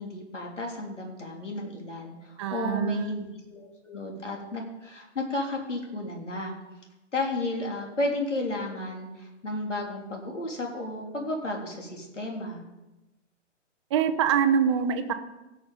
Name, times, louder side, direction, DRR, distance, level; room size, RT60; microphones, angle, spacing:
voice 1, 0.0-6.5 7.1-12.6, left 2 dB, 70° left, 1 dB, 3.5 m, -33 dB
voice 2, 2.4-3.1 13.9-15.1, right 8 dB, 25° right, 9 dB, 0.7 m, -24 dB
17.0 x 6.7 x 5.5 m, 1.0 s
figure-of-eight pair, 130°, 37 cm